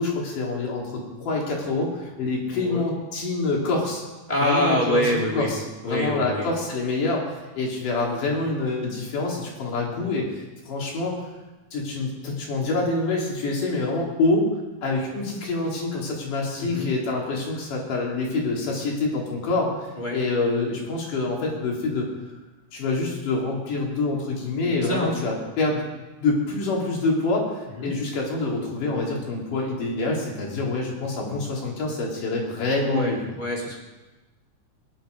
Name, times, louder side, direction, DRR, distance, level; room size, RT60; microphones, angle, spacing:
voice 1, 0.0-4.0 4.4-5.6 5.8-11.2 11.7-14.5 14.8-19.9 20.1-22.1 22.7-25.8 26.2-33.2, left 3 dB, 65° left, -2 dB, 4.4 m, -26 dB
voice 2, 2.5-2.8 4.3-5.5 5.8-6.5 16.6-16.9 20.0-20.2 24.8-25.2 27.8-27.9 32.9-33.8, left 1 dB, 15° left, -3 dB, 2.7 m, -25 dB
21.0 x 10.5 x 5.2 m, 1.2 s
omnidirectional pair, 4.0 m